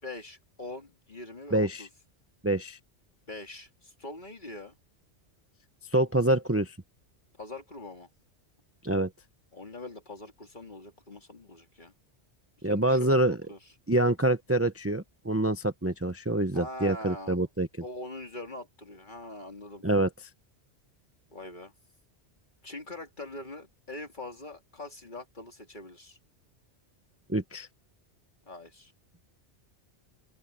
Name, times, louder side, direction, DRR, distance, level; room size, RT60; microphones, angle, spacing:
voice 1, 0.0-1.9 3.3-4.8 7.4-8.1 9.5-11.9 12.6-13.6 16.5-17.4 17.8-19.8 21.3-21.7 22.6-26.2 28.5-28.9, left 2 dB, 45° left, 3.0 m, -43 dB
voice 2, 1.5-1.9 2.4-2.8 5.9-6.8 8.8-9.1 12.6-13.4 13.9-17.7 19.8-20.1 27.3-27.7, right 1 dB, 15° right, 0.8 m, -26 dB
open air
omnidirectional pair, 1.2 m